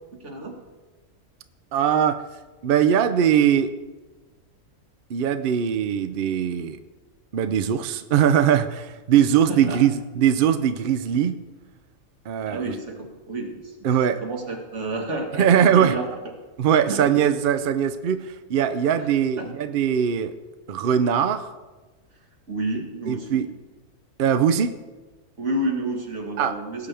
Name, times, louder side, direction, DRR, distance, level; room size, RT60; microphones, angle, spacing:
voice 1, 0.2-0.5 9.5-9.8 12.4-13.7 14.2-16.1 16.9-17.1 18.9-19.1 19.4-19.5 22.5-23.4 25.4-26.9, right 2 dB, 50° right, 2 dB, 2.0 m, -30 dB
voice 2, 1.7-2.2 2.6-3.7 5.1-6.8 7.3-11.4 12.3-12.7 13.8-14.2 15.4-16.0 16.6-20.3 20.7-21.5 23.1-23.5 24.2-24.7 26.4-26.6, right 8 dB, 65° right, 10 dB, 0.5 m, -21 dB
17.5 x 8.9 x 3.4 m, 1.2 s
omnidirectional pair, 1.6 m